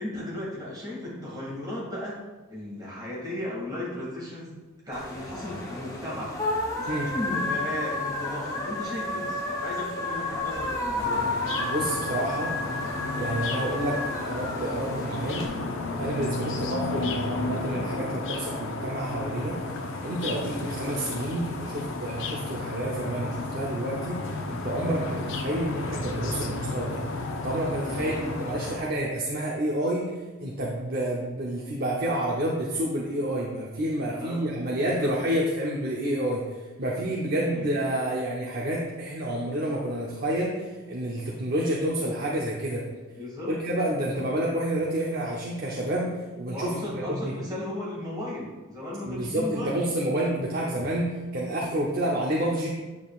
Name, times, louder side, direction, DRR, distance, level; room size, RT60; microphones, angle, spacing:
voice 1, 0.0-2.2 2.5-4.5 4.8-6.4 6.8-11.4 16.4-16.7 25.0-25.2 27.9-28.3 34.0-34.4 35.0-35.1 37.5-37.7 43.2-43.5 44.2-44.4 46.5-49.8, left 1 dB, 15° right, -6 dB, 2.2 m, -35 dB
sound 1, 4.9-15.5, left 2 dB, 15° left, 0.9 m, -31 dB
sound 2, 11.0-28.8, left 2 dB, 60° left, 0.7 m, -33 dB
voice 2, 11.6-12.5 13.2-15.4 16.0-19.6 20.0-27.0 27.4-42.9 43.5-47.3 49.0-52.7, right 1 dB, 40° right, -3 dB, 0.8 m, -29 dB
8.3 x 7.1 x 2.4 m, 1.2 s
head